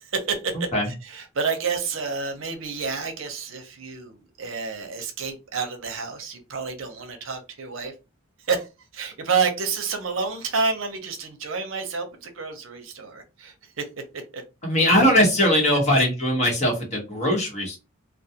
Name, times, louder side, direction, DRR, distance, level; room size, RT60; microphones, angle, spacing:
voice 1, 0.0-7.9 8.4-13.8 14.1-14.4 15.4-15.8, right 5 dB, 75° right, 0.6 m, -29 dB
voice 2, 14.6-17.8, equal, 35° left, 1.1 m, -20 dB
2.4 x 2.2 x 2.7 m
head